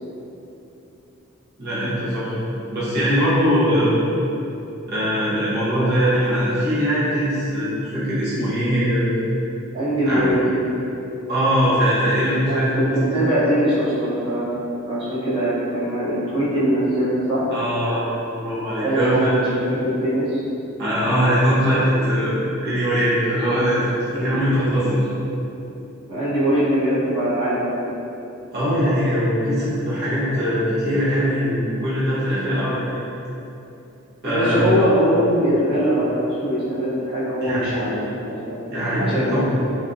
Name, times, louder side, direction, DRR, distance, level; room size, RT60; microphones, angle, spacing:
voice 1, 1.6-2.3 2.7-3.9 4.9-9.2 10.0-10.2 11.3-12.7 17.5-18.0 18.3-19.4 20.8-25.0 28.5-33.0 34.2-34.6 37.4-37.8 38.7-39.4, equal, 50° right, -11 dB, 0.9 m, -21 dB
voice 2, 9.7-10.4 12.5-17.4 18.8-20.4 24.1-24.4 26.1-27.8 31.7-31.8 32.5-32.7 34.2-38.6 39.0-39.4, equal, 25° right, -13 dB, 0.9 m, -22 dB
3.3 x 2.6 x 2.6 m, 2.8 s
head